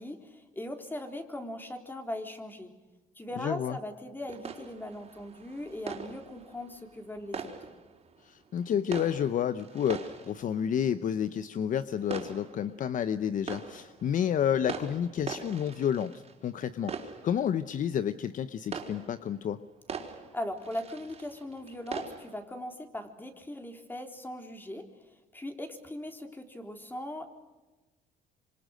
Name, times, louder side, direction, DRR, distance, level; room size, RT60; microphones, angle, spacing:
voice 1, 0.0-2.7 3.2-7.5 20.3-24.9 25.3-27.3, left 1 dB, 10° left, 5 dB, 3.7 m, -39 dB
voice 2, 3.4-3.8 8.2-19.6, left 9 dB, 50° left, 13 dB, 0.9 m, -30 dB
sound 1, 4.3-22.4, right 5 dB, 40° right, 4.7 m, -43 dB
26.5 x 25.5 x 6.5 m, 1.2 s
cardioid pair, 110°, 17 cm